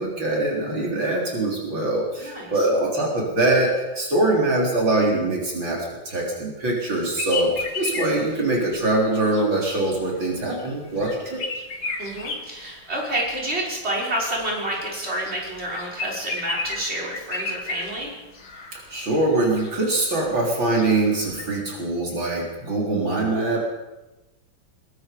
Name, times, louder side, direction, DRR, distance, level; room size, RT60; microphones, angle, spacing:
voice 1, 0.0-11.4 18.7-23.6, right 2 dB, 75° right, -2 dB, 4.7 m, -23 dB
voice 2, 2.2-2.7 12.0-18.2, right 1 dB, 30° right, -3 dB, 6.1 m, -29 dB
sound 1, 7.1-21.6, left 3 dB, 85° left, 3.0 m, -35 dB
22.5 x 22.0 x 5.4 m, 1.1 s
omnidirectional pair, 2.1 m